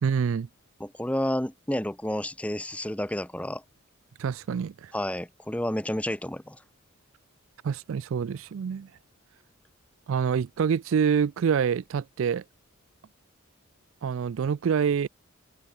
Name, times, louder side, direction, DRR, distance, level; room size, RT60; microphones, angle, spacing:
voice 1, 0.0-0.5 4.2-4.9 7.6-8.9 10.1-12.4 14.0-15.1, right 7 dB, 70° right, 0.3 m, -26 dB
voice 2, 0.8-3.6 4.9-6.6, left 1 dB, 5° left, 0.8 m, -30 dB
head